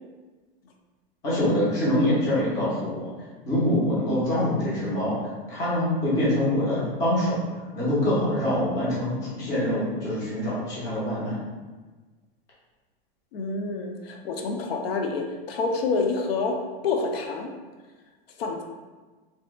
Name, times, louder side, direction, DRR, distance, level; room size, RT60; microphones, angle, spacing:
voice 1, 1.2-3.0 3.5-5.2 5.5-7.4 7.7-11.4, left 1 dB, 10° left, -8 dB, 0.4 m, -24 dB
voice 2, 13.3-16.6 16.8-17.5 18.4-18.6, left 4 dB, 90° left, 3 dB, 0.6 m, -27 dB
2.7 x 2.2 x 3.3 m, 1.3 s
supercardioid pair, 175°, 29 cm